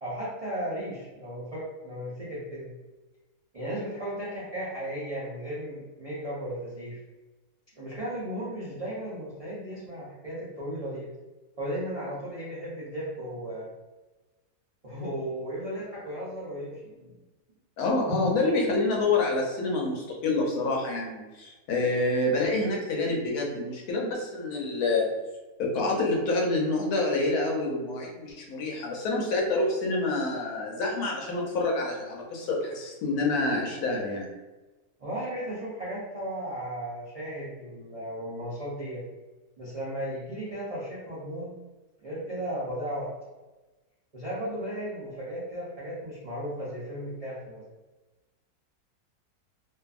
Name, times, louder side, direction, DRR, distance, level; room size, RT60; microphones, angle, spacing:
voice 1, 0.0-2.7 3.5-7.0 7.8-11.1 11.6-13.7 14.8-17.2 18.0-18.3 35.0-39.0 39.6-41.5 42.0-43.1 44.1-47.6, equal, 70° right, -9 dB, 0.3 m, -35 dB
voice 2, 17.8-25.1 25.6-34.3, left 2 dB, 70° left, -1 dB, 1.1 m, -27 dB
2.6 x 2.5 x 2.4 m, 1.2 s
omnidirectional pair, 1.7 m